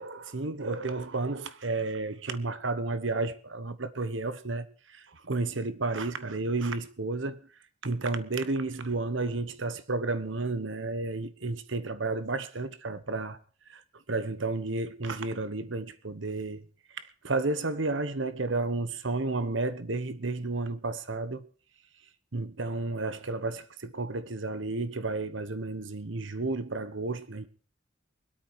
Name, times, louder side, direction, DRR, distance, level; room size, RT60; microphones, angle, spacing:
voice 1, 0.0-7.4 7.8-13.4 13.7-16.6 16.9-21.4 22.3-27.5, right 3 dB, 70° right, 1.1 m, -32 dB
24.0 x 8.9 x 4.7 m
head